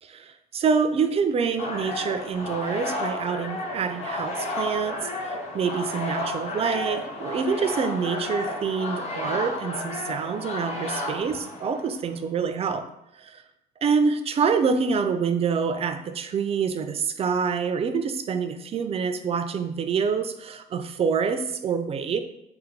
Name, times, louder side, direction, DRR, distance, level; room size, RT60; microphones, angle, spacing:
voice 1, 0.0-12.8 13.2-13.4 13.8-22.2, right 5 dB, 35° right, 9 dB, 0.4 m, -26 dB
sound 1, 1.6-12.0, left 2 dB, 40° left, 0.8 m, -32 dB
3.8 x 2.2 x 4.4 m, 0.86 s
cardioid pair, 110°, 17 cm